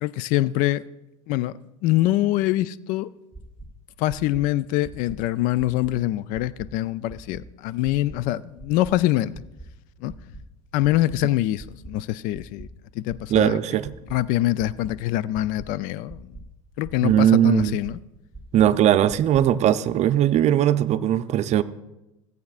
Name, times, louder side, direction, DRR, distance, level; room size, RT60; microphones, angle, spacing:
voice 1, 0.0-0.8 1.3-1.5 1.8-3.1 4.0-9.3 10.0-10.1 10.7-12.7 12.9-13.6 14.1-16.4 16.8-18.0, left 15 dB, 60° left, 0.4 m, -24 dB
sound 1, 3.3-3.7 4.1-4.4 4.8-5.2 5.6-5.9 6.3-6.7 7.1-7.4 7.8-8.2 8.6-8.9 9.3-9.7 10.1-10.4 10.8-11.2 11.6-11.9 12.3-12.7 13.1-13.4 13.8-14.2 14.6-14.9 15.3-15.7 16.1-16.4 16.8-17.2 17.6-17.9 18.3-18.7 19.1-19.4, right 3 dB, 5° left, 2.5 m, -42 dB
voice 2, 13.3-13.9 17.0-17.8 18.5-21.6, right 11 dB, 45° right, 0.6 m, -19 dB
18.0 x 8.5 x 2.4 m
hypercardioid pair, 85°, 16 cm